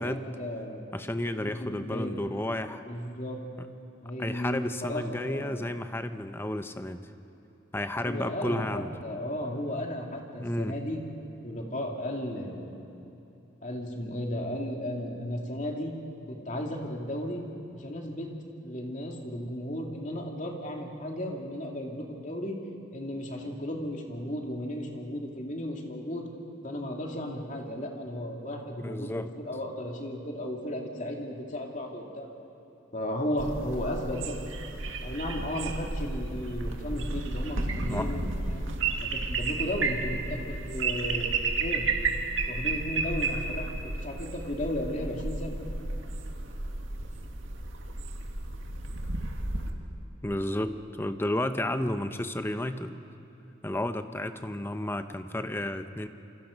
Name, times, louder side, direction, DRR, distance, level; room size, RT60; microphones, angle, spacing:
voice 1, 0.0-0.8 1.4-2.3 2.9-3.4 4.0-5.7 8.0-11.0 11.4-12.8 13.6-15.9 16.3-17.4 17.7-18.3 18.6-22.6 22.9-26.3 26.6-32.3 32.9-34.4 35.0-38.6 39.0-41.9 42.5-45.6, left 1 dB, 40° left, 1 dB, 2.8 m, -35 dB
voice 2, 0.9-2.8 4.2-7.0 7.7-8.9 10.4-10.8 28.8-29.3 37.9-38.1 50.2-53.0 53.6-56.1, left 1 dB, 10° left, 9 dB, 0.8 m, -32 dB
sound 1, 33.4-49.7, right 3 dB, 85° right, 2.0 m, -32 dB
28.0 x 25.5 x 5.3 m, 2.9 s
head